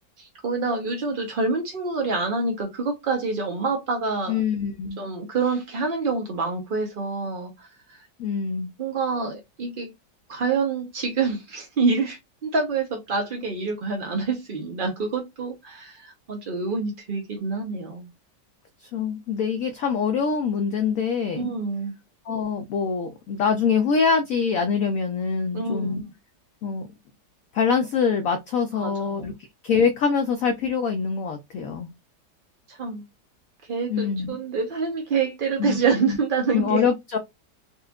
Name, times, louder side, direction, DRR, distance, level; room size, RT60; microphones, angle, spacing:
voice 1, 0.2-4.4 5.0-7.7 7.9-8.0 8.8-9.9 10.3-18.1 21.4-21.9 25.5-26.1 28.7-29.3 32.7-33.0 33.7-36.8, right 4 dB, 65° right, 0.5 m, -27 dB
voice 2, 4.3-5.0 8.2-8.7 18.9-21.5 22.3-26.0 26.6-26.9 27.5-29.3 29.6-31.9 33.9-34.4 35.6-36.2 36.5-37.2, left 6 dB, 70° left, 0.8 m, -24 dB
4.1 x 2.4 x 2.2 m
omnidirectional pair, 1.9 m